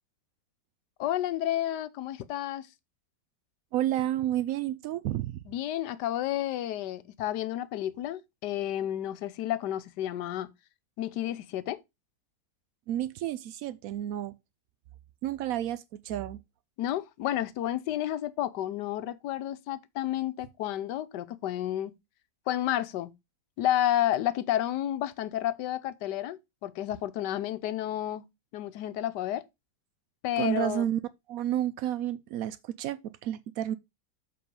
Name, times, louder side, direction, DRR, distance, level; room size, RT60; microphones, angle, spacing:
voice 1, 1.0-2.7 5.5-10.5 11.0-11.8 16.8-21.9 22.5-23.1 23.6-28.2 28.5-29.4 30.2-30.9, left 12 dB, 70° left, 1.2 m, -31 dB
voice 2, 3.7-5.4 12.9-14.3 15.2-16.4 30.4-31.0 31.3-33.7, right 12 dB, 90° right, 0.7 m, -31 dB
7.6 x 4.0 x 5.3 m
omnidirectional pair, 2.1 m